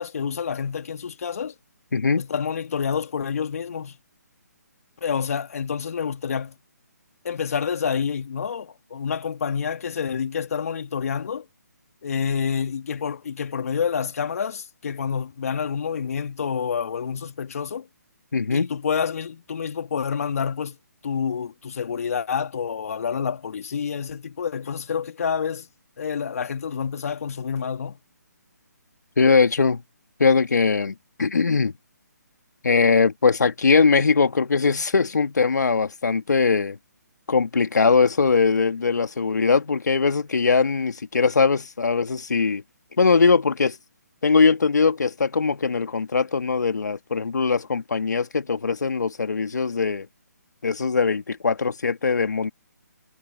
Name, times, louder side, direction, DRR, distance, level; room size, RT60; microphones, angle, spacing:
voice 1, 0.0-1.5 2.2-4.0 5.0-6.6 7.2-11.4 12.0-17.9 18.5-20.8 21.0-25.7 26.0-28.0, left 6 dB, 55° left, 2.2 m, -28 dB
voice 2, 1.9-2.2 18.3-18.7 29.2-29.8 30.2-31.7 32.6-36.8 37.3-42.6 43.0-43.8 44.2-50.1 50.6-52.5, left 4 dB, 75° left, 1.9 m, -21 dB
figure-of-eight pair, 150°, 10 cm